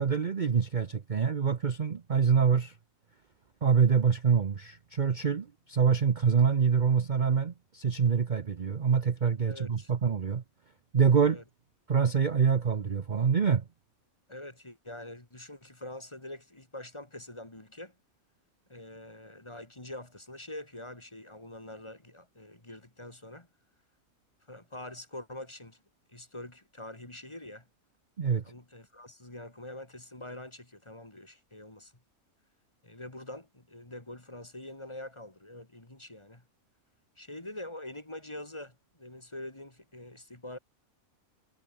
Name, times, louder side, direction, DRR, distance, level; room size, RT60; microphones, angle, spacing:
voice 1, 0.0-2.7 3.6-10.4 10.9-11.4 11.9-13.6 28.2-28.4, right 6 dB, 40° right, 0.9 m, -25 dB
voice 2, 9.5-9.9 11.2-11.4 14.3-17.9 18.7-23.5 24.5-25.8 26.1-27.6 28.4-31.9 32.8-36.4 37.2-40.6, left 1 dB, 20° left, 2.4 m, -45 dB
omnidirectional pair, 1.5 m